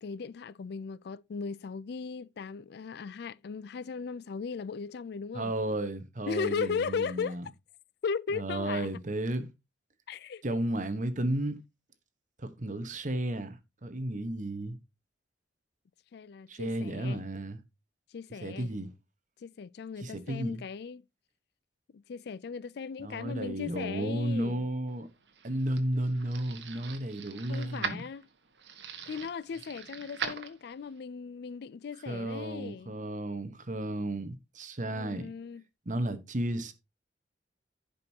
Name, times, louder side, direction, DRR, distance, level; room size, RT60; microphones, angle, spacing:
voice 1, 0.0-5.5 6.3-7.4 8.0-8.9 10.1-10.4 16.1-17.2 18.1-18.7 19.4-21.0 21.9-24.7 25.9-26.0 27.5-28.3 29.1-32.9 34.9-35.6, left 5 dB, 65° left, 0.4 m, -37 dB
voice 2, 5.3-7.4 8.3-9.5 10.4-11.6 12.4-14.8 16.5-17.6 18.4-18.9 20.0-20.6 23.0-25.1 25.4-28.0 32.1-35.3 35.9-36.7, right 1 dB, 45° right, 1.1 m, -33 dB
sound 1, 25.0-31.0, right 5 dB, 75° right, 1.3 m, -41 dB
15.0 x 5.3 x 2.8 m
head